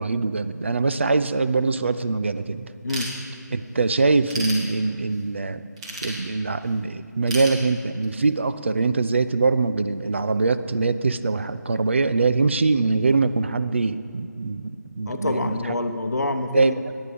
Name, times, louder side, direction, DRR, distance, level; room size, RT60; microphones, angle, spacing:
voice 1, 0.0-2.7 3.5-5.6 6.0-15.6 16.5-16.7, right 3 dB, 40° right, 12 dB, 0.4 m, -23 dB
voice 2, 2.8-3.1 15.1-16.9, left 2 dB, 65° left, 7 dB, 0.8 m, -26 dB
Ratchet pawl / Tools, 2.9-3.7 4.1-5.2 5.8-6.7 7.3-8.3, right 1 dB, 20° right, 1.5 m, -33 dB
9.5 x 9.4 x 5.1 m, 2.5 s
figure-of-eight pair, 160°, 10 cm